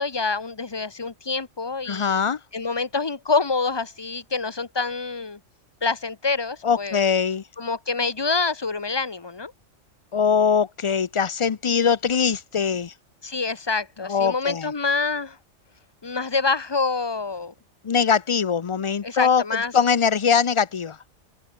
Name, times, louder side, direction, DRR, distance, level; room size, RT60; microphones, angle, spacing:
voice 1, 0.0-5.4 5.8-7.0 7.6-9.5 13.2-15.4 16.0-17.5 19.0-19.7, left 4 dB, 25° left, 0.9 m, -26 dB
voice 2, 1.9-2.4 6.6-7.4 10.1-12.9 14.1-14.7 17.8-19.4 19.7-21.0, left 6 dB, 45° left, 0.4 m, -22 dB
open air
omnidirectional pair, 1.3 m